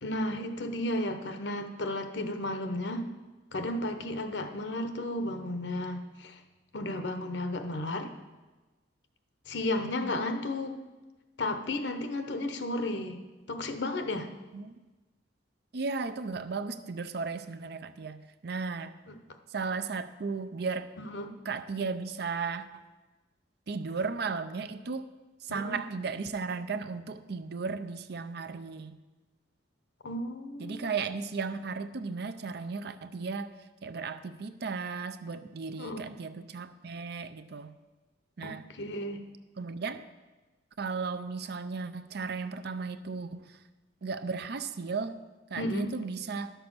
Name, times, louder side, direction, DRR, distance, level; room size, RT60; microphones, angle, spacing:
voice 1, 0.0-3.1 3.5-6.4 6.7-8.1 9.5-10.8 11.4-13.2 13.5-14.3 21.0-21.3 25.5-25.8 30.0-30.8 35.8-36.1 38.4-39.2 45.6-45.9, left 1 dB, 70° left, 7 dB, 1.0 m, -33 dB
voice 2, 15.7-18.9 19.5-20.9 21.4-22.8 23.7-25.1 25.4-28.9 30.6-37.7 38.4-38.6 39.6-40.0 40.8-43.6 44.0-45.2 45.5-46.5, right 4 dB, 60° right, 10 dB, 0.6 m, -35 dB
11.5 x 6.8 x 6.1 m, 1.2 s
head